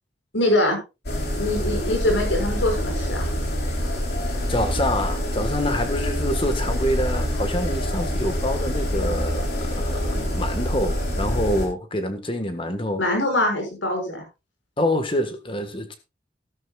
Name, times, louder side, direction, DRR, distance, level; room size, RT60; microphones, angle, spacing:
voice 1, 0.3-0.8 1.3-3.3 13.0-14.2, left 1 dB, 85° left, 3 dB, 6.1 m, -23 dB
sound 1, 1.0-11.7, equal, 55° left, 3.7 m, -26 dB
voice 2, 4.5-13.0 14.8-15.9, left 1 dB, 30° left, 8 dB, 1.6 m, -26 dB
13.0 x 13.0 x 2.4 m, 0.27 s
head